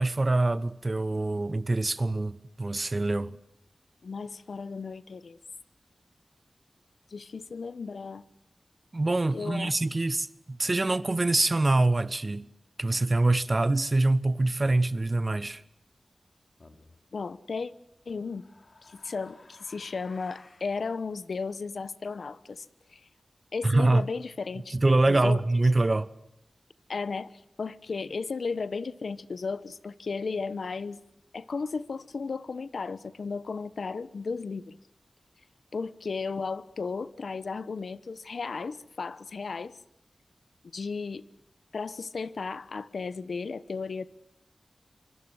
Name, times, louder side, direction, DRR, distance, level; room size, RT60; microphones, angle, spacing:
voice 1, 0.0-3.4 8.9-12.5 12.8-15.6 23.6-24.1 24.7-26.1, right 2 dB, 35° right, 1.1 m, -25 dB
voice 2, 4.0-5.4 7.1-8.2 9.3-9.7 17.1-17.7 18.1-18.5 18.8-23.0 23.5-24.8 25.1-25.4 26.9-31.0 31.3-34.8 35.7-39.8 40.7-41.2 41.7-44.1, left 4 dB, 80° left, 1.1 m, -35 dB
sound 1, 16.6-17.0 18.0-20.7, left 2 dB, 55° left, 3.5 m, -56 dB
25.5 x 24.5 x 7.9 m
wide cardioid pair, 85°, 0 cm